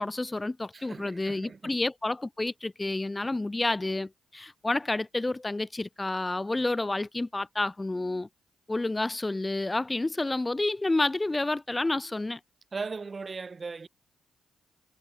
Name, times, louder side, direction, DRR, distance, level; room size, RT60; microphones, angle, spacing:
voice 1, 0.0-8.3 8.7-12.4, left 2 dB, 20° left, 0.6 m, -29 dB
voice 2, 0.7-1.8 12.7-13.9, right 4 dB, 40° right, 5.5 m, -38 dB
supercardioid pair, 65°, 0 cm